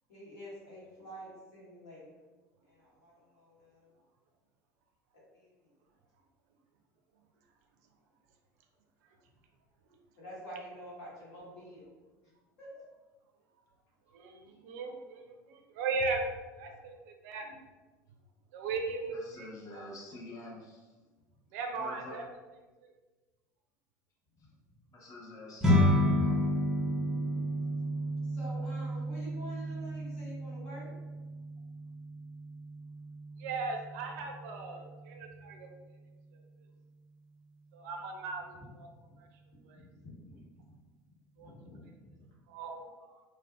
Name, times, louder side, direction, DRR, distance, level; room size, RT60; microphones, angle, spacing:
voice 1, 0.1-2.2 2.6-3.9 5.3-5.7 10.2-11.9 12.6-12.8 24.4-24.5 26.8-27.8 28.2-30.9 38.5-38.7 39.1-39.2 39.7-40.4 41.3-42.3, equal, 65° left, -7 dB, 1.2 m, -48 dB
voice 2, 14.1-16.2 16.6-17.6 18.5-19.5 19.7-19.8 21.5-22.3 22.8-22.9 33.4-35.7 36.3-36.4 37.7-38.9 39.2-39.3 39.6-39.8 41.4-41.5 42.5-43.2, right 4 dB, 65° right, 3 dB, 0.4 m, -38 dB
voice 3, 19.1-20.9 21.7-22.3 24.9-26.4, left 2 dB, 35° left, -3 dB, 0.8 m, -47 dB
sound 1, 25.6-35.1, equal, 5° right, 0.6 m, -32 dB
2.5 x 2.1 x 2.4 m, 1.2 s
hypercardioid pair, 75°, 10 cm